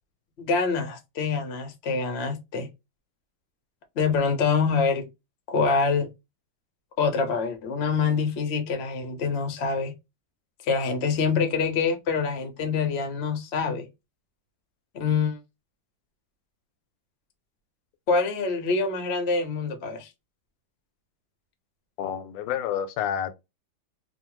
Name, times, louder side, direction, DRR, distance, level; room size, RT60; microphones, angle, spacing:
voice 1, 0.4-2.7 4.0-5.1 5.5-6.1 7.0-9.9 10.6-13.9 14.9-15.4 18.1-20.1, left 5 dB, 65° left, 0.6 m, -25 dB
voice 2, 22.0-23.3, left 9 dB, 85° left, 1.3 m, -29 dB
3.1 x 2.2 x 3.0 m
omnidirectional pair, 2.0 m